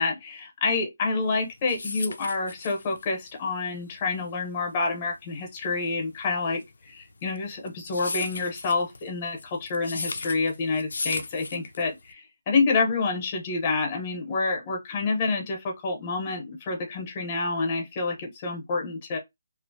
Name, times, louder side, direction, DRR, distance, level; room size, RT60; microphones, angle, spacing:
voice 1, 0.0-19.2, left 4 dB, 25° left, 0.7 m, -28 dB
sound 1, 1.3-12.1, left 3 dB, 75° left, 0.3 m, -37 dB
2.4 x 2.0 x 2.6 m
hypercardioid pair, 165°, 0 cm